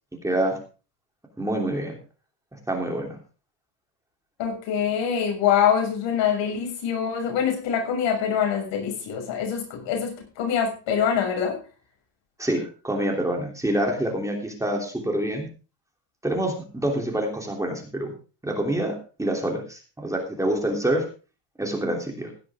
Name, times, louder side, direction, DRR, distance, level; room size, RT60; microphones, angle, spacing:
voice 1, 0.2-0.6 1.4-2.0 2.7-3.1 12.4-15.5 16.2-18.1 18.4-21.0 21.6-22.3, right 1 dB, 5° right, 1 dB, 3.1 m, -26 dB
voice 2, 4.4-11.6, left 8 dB, 75° left, 2 dB, 6.7 m, -24 dB
16.5 x 11.0 x 3.6 m, 0.35 s
cardioid pair, 155°, 45 cm